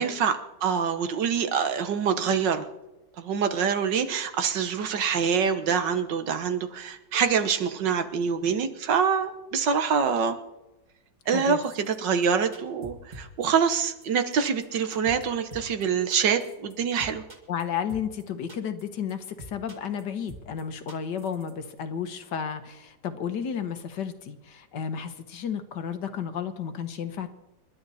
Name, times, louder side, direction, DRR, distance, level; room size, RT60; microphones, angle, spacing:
voice 1, 0.0-2.7 3.2-10.4 11.3-17.2, right 6 dB, 70° right, 8 dB, 1.8 m, -25 dB
voice 2, 11.3-11.6 17.5-27.3, left 7 dB, 65° left, 9 dB, 1.8 m, -32 dB
sound 1, 11.6-12.0 12.2-12.3 12.5-13.5 13.7-14.1 14.3-14.4 14.6-14.7 14.9-15.3 15.5-15.8 16.1-16.7 17.0-17.6 17.9-18.2 18.5-18.8 19.1-19.2 19.4-20.0 20.3-20.6 20.9-21.5 21.8-21.9, right 1 dB, 25° right, 2.2 m, -44 dB
28.0 x 12.0 x 4.2 m, 1.0 s
omnidirectional pair, 2.0 m